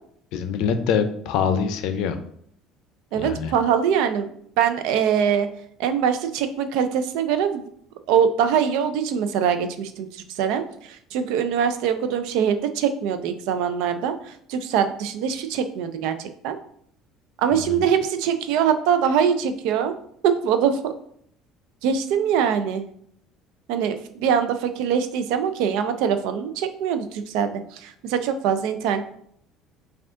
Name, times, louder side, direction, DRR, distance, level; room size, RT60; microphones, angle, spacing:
voice 1, 0.3-2.2 3.2-3.5 17.5-17.8, left 7 dB, 70° left, 9 dB, 0.5 m, -24 dB
voice 2, 3.1-4.3 4.6-5.5 5.8-7.7 8.1-16.6 17.4-19.9 20.2-20.9 21.8-22.9 23.7-29.0, right 8 dB, 75° right, 9 dB, 0.4 m, -23 dB
4.9 x 2.4 x 3.6 m, 0.66 s
cardioid pair, 160°, 0 cm